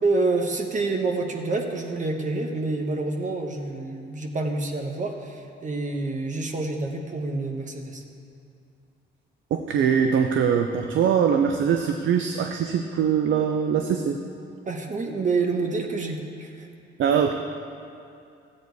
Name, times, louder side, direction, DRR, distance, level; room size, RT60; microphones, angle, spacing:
voice 1, 0.0-8.0 14.7-16.7, right 3 dB, 40° right, 3 dB, 1.2 m, -27 dB
voice 2, 9.5-14.2 17.0-17.3, right 7 dB, 75° right, 5 dB, 0.7 m, -22 dB
13.5 x 8.7 x 4.7 m, 2.5 s
cardioid pair, 90°, 20 cm